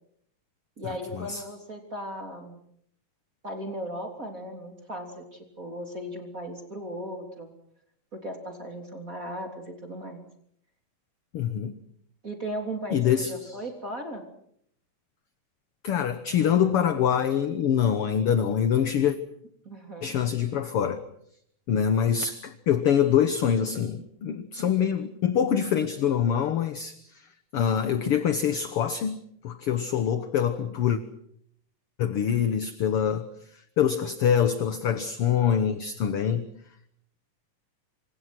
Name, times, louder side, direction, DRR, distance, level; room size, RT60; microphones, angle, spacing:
voice 1, 0.8-2.6 3.4-7.5 8.1-10.2 12.2-14.2 19.7-20.1, equal, 25° right, 3.6 m, -37 dB
voice 2, 11.3-11.8 12.9-13.6 15.8-19.2 20.0-21.0 21.7-27.3 27.5-31.0 32.0-36.5, left 8 dB, 60° left, 1.8 m, -25 dB
27.5 x 26.0 x 6.1 m
omnidirectional pair, 3.4 m